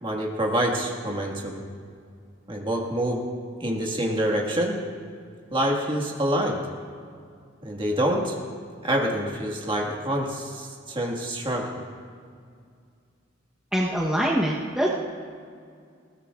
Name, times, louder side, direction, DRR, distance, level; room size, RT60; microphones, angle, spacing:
voice 1, 0.0-1.6 2.5-3.3 3.6-4.8 5.5-6.6 7.6-8.4 8.8-11.7, right 1 dB, 25° right, -1 dB, 1.8 m, -26 dB
voice 2, 13.7-14.9, equal, 5° right, -5 dB, 1.0 m, -24 dB
20.5 x 17.5 x 2.5 m, 2.3 s
head